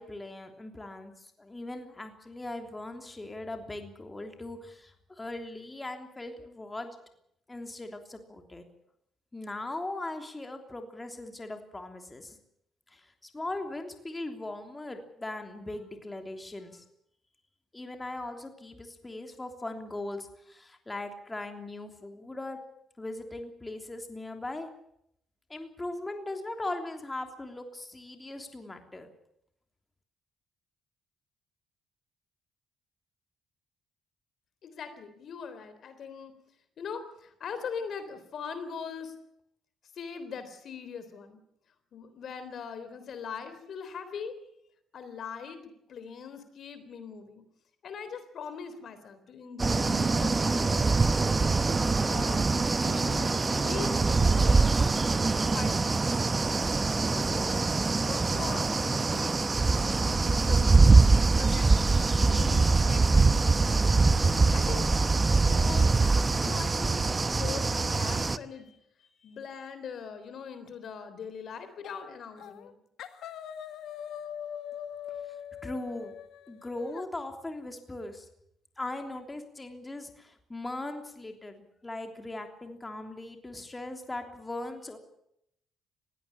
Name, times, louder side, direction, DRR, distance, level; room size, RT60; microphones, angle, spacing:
voice 1, 0.0-6.9 7.5-8.6 9.3-12.4 12.9-16.8 17.7-22.6 23.0-24.7 25.5-29.1 75.3-75.4 75.6-76.1 76.5-78.3 78.8-85.0, left 2 dB, 20° left, 5 dB, 3.2 m, -39 dB
voice 2, 34.6-36.3 36.8-39.1 39.9-41.4 41.9-44.4 44.9-47.4 47.8-51.2 51.7-52.6 52.8-54.8 55.1-56.0 57.0-57.7 58.1-61.9 62.2-64.9 65.3-65.9 66.4-68.8 69.2-72.8, left 6 dB, 60° left, 11 dB, 3.6 m, -41 dB
sound 1, 49.6-68.4, right 3 dB, 25° right, 0.9 m, -24 dB
sound 2, 71.8-72.1 72.4-72.7 73.0-77.1, left 9 dB, 80° left, 1.8 m, -42 dB
21.0 x 16.5 x 8.7 m, 0.75 s
cardioid pair, 90°, 0 cm